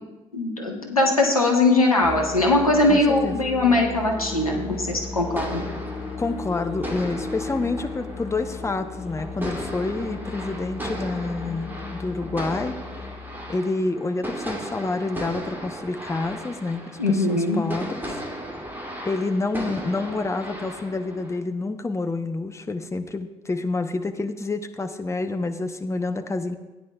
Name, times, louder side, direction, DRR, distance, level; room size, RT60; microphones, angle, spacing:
voice 1, 0.3-5.6 17.0-17.6, left 2 dB, 90° left, 1 dB, 0.9 m, -21 dB
Musical instrument, 2.0-13.6, left 4 dB, 35° left, 1.7 m, -36 dB
voice 2, 2.9-3.3 6.2-12.7 13.5-18.0 19.0-26.5, left 3 dB, 15° left, 7 dB, 0.8 m, -28 dB
sound 1, 4.1-21.4, equal, 10° right, 2.5 m, -37 dB
16.0 x 9.7 x 2.3 m, 1.1 s
figure-of-eight pair, 45°, 18 cm